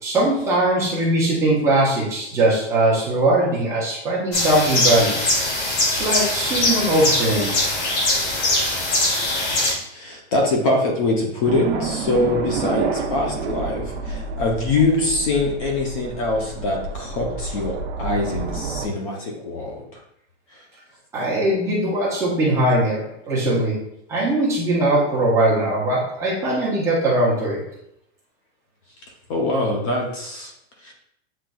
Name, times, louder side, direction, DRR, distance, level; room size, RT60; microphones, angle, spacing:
voice 1, 0.0-5.2 5.9-7.6 21.1-23.0 23.3-23.7 24.1-27.6, right 1 dB, 10° right, -7 dB, 0.7 m, -20 dB
sound 1, 4.3-9.7, left 2 dB, 80° left, 1.9 m, -21 dB
voice 2, 6.2-6.5 9.9-19.8 20.5-20.6 29.3-30.5 30.8-30.9, left 2 dB, 30° left, 1 dB, 0.6 m, -23 dB
sound 2, 11.4-18.9, right 4 dB, 60° right, 0.7 m, -29 dB
7.6 x 3.1 x 2.3 m, 0.75 s
supercardioid pair, 180°, 34 cm